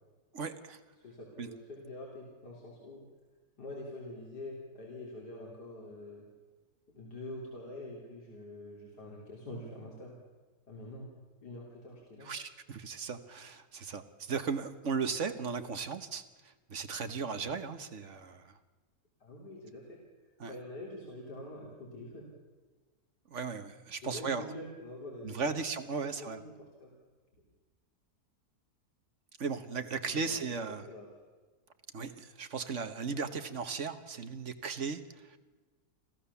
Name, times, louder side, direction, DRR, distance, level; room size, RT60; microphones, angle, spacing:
voice 1, 0.3-0.8 1.4-1.5 12.2-16.2 16.7-18.5 20.4-20.5 23.3-24.5 25.2-26.4 29.4-30.9 31.9-35.4, right 5 dB, 50° right, 10 dB, 1.4 m, -36 dB
voice 2, 1.0-3.1 3.6-6.3 6.9-10.1 10.7-11.1 11.4-12.3 19.2-20.0 20.5-22.3 24.0-25.6 26.2-26.9 30.0-31.1, left 1 dB, 85° left, -3 dB, 4.0 m, -45 dB
26.0 x 15.0 x 7.0 m, 1.3 s
omnidirectional pair, 1.7 m